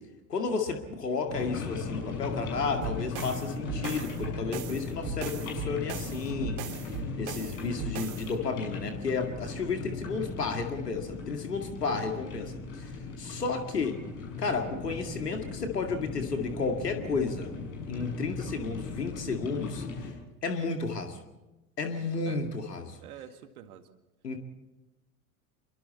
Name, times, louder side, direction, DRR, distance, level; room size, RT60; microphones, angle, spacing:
voice 1, 0.3-6.6 7.2-12.9 13.2-14.0 14.4-17.5 17.9-19.8 20.4-21.2 21.8-23.0 24.2-24.4, left 4 dB, 80° left, 5 dB, 2.2 m, -32 dB
sound 1, 1.3-20.1, left 4 dB, 60° left, 7.0 m, -38 dB
sound 2, 2.8-8.3, right 5 dB, 50° right, 2.7 m, -38 dB
voice 2, 23.0-23.9, right 10 dB, 65° right, 8 dB, 2.0 m, -46 dB
27.5 x 23.5 x 4.2 m, 1.0 s
figure-of-eight pair, 80°, 47 cm